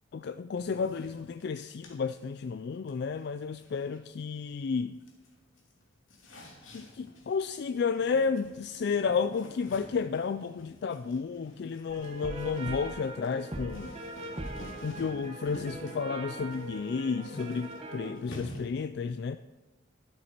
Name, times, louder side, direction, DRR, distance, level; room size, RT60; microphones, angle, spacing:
voice 1, 0.1-5.0 6.7-13.9 14.8-19.4, left 5 dB, 55° left, 11 dB, 0.3 m, -32 dB
sound 1, 0.6-4.7 5.0-18.6, left 1 dB, 85° left, 2.7 m, -50 dB
sound 2, 11.9-18.1, right 2 dB, 30° right, 1.3 m, -41 dB
12.5 x 11.0 x 4.4 m, 1.1 s
head